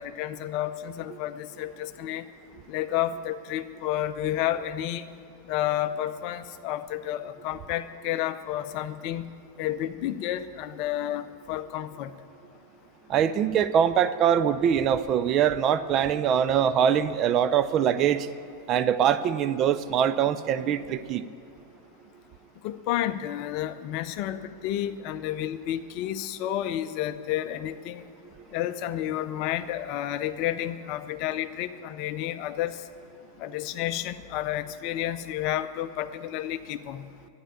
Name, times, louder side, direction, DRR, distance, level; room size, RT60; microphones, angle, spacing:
voice 1, 0.0-2.2 2.7-5.1 5.5-9.3 9.6-12.1 22.6-28.0 28.5-32.7 33.4-37.1, left 12 dB, 45° left, 12 dB, 0.5 m, -31 dB
voice 2, 13.1-18.3 18.7-21.3, right 9 dB, 35° right, 11 dB, 0.5 m, -23 dB
12.5 x 9.9 x 8.9 m, 2.7 s
figure-of-eight pair, 90°, 0 cm